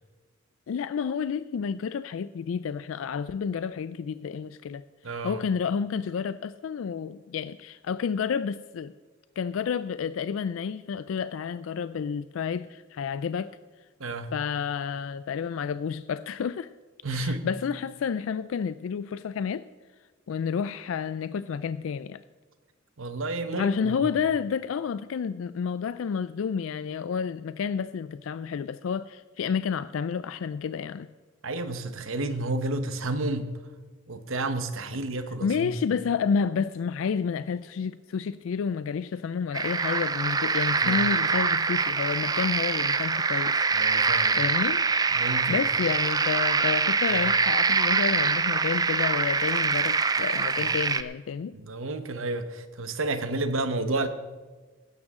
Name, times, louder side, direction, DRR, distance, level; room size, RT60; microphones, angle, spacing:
voice 1, 0.7-8.9 9.4-13.5 14.3-16.7 17.1-19.6 20.3-22.2 23.5-31.1 35.4-43.6 44.4-44.9 45.2-51.5, left 6 dB, 75° left, 0.3 m, -30 dB
voice 2, 5.0-5.4 14.0-14.3 17.0-17.4 23.0-24.0 31.4-33.5 34.1-35.7 40.8-41.0 43.7-44.4 45.1-45.6 47.1-47.2 50.6-50.7 51.5-54.1, right 2 dB, 80° right, 1.0 m, -31 dB
sound 1, 39.5-51.0, right 4 dB, 20° right, 0.4 m, -24 dB
16.0 x 12.5 x 3.7 m
head